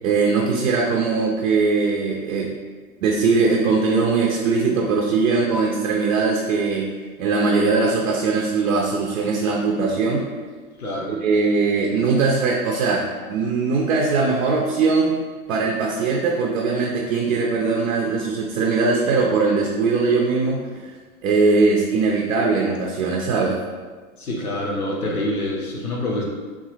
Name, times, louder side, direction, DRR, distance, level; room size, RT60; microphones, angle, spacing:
voice 1, 0.0-2.5 3.0-6.9 7.2-10.3 11.1-15.1 15.5-20.9 21.2-23.6, right 4 dB, 65° right, -1 dB, 0.6 m, -20 dB
voice 2, 10.8-11.1 24.2-26.2, left 1 dB, 90° left, -2 dB, 0.8 m, -26 dB
3.8 x 2.3 x 2.9 m, 1.4 s
hypercardioid pair, 100°, 43 cm